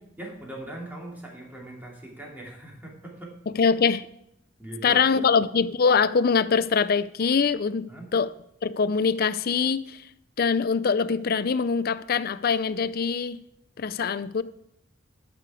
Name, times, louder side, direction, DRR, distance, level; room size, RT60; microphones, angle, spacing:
voice 1, 0.2-3.6 4.6-5.3 7.9-8.1, right 1 dB, 10° right, 2.7 m, -40 dB
voice 2, 3.6-4.1 4.8-7.8 8.1-8.3 8.6-10.0 10.4-13.4 13.8-14.4, left 5 dB, 50° left, 0.5 m, -23 dB
11.5 x 6.8 x 4.9 m
head